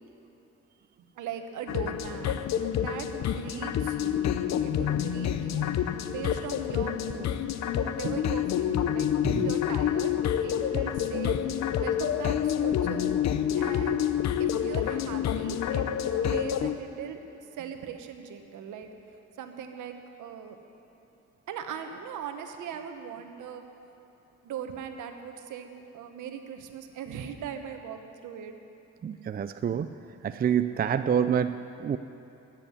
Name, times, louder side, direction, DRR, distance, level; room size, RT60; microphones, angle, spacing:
voice 1, 1.2-2.4 2.8-4.2 4.4-5.7 6.1-7.5 7.8-10.1 10.4-13.1 13.5-14.1 14.4-15.8 16.3-17.2 17.5-18.9 19.4-20.6 21.5-23.6 24.4-28.6 29.7-29.9, right 8 dB, 80° right, 6 dB, 1.2 m, -39 dB
sound 1, 1.7-16.7, left 9 dB, 65° left, 0.7 m, -28 dB
voice 2, 29.0-29.9 30.2-32.0, right 8 dB, 30° right, 10 dB, 0.4 m, -27 dB
14.5 x 7.7 x 9.8 m, 2.9 s
cardioid pair, 90°, 30 cm